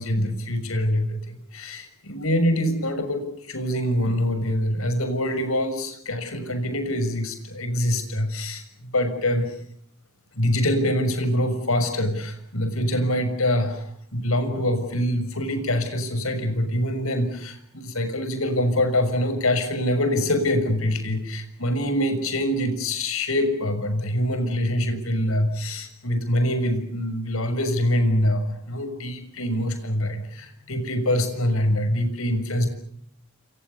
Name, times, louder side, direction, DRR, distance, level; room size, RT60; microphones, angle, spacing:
voice 1, 0.0-9.6 10.3-32.7, left 1 dB, 70° left, 9 dB, 6.5 m, -25 dB
29.5 x 27.5 x 7.0 m, 0.67 s
head